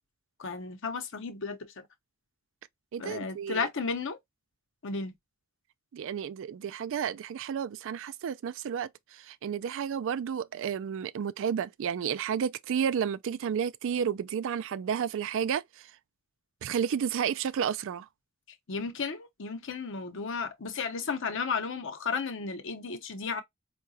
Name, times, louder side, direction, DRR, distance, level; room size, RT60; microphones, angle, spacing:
voice 1, 0.4-1.9 3.0-4.2 4.8-5.1 18.7-23.4, left 5 dB, 60° left, 0.7 m, -33 dB
voice 2, 2.9-3.7 5.9-15.9 16.6-18.1, right 8 dB, 65° right, 0.3 m, -31 dB
4.7 x 2.2 x 2.7 m
head